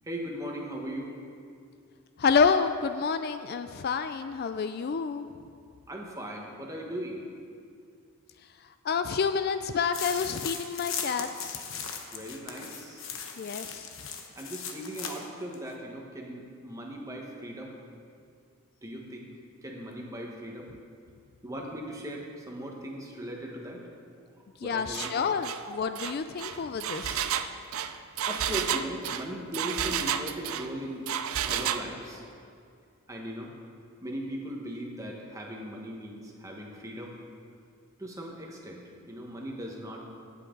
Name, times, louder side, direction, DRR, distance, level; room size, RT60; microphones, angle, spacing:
voice 1, 0.0-1.1 5.9-7.2 12.1-13.1 14.3-17.7 18.8-19.3 19.6-20.7 21.4-23.9 24.6-25.3 25.6-25.8 28.3-31.0 31.5-32.2 33.1-33.5 34.0-37.1 38.0-40.0, equal, 15° right, -1 dB, 1.4 m, -38 dB
voice 2, 2.2-5.3 8.8-11.6 13.4-13.9 24.6-27.2, left 5 dB, 45° left, 10 dB, 0.3 m, -28 dB
sound 1, 9.9-15.2 15.5-15.6, left 6 dB, 65° left, 1.1 m, -38 dB
Engine, 24.9-25.1 25.4-25.6 26.0-30.7 31.1-31.9, right 9 dB, 80° right, 0.5 m, -31 dB
17.5 x 8.5 x 3.9 m, 2.3 s
head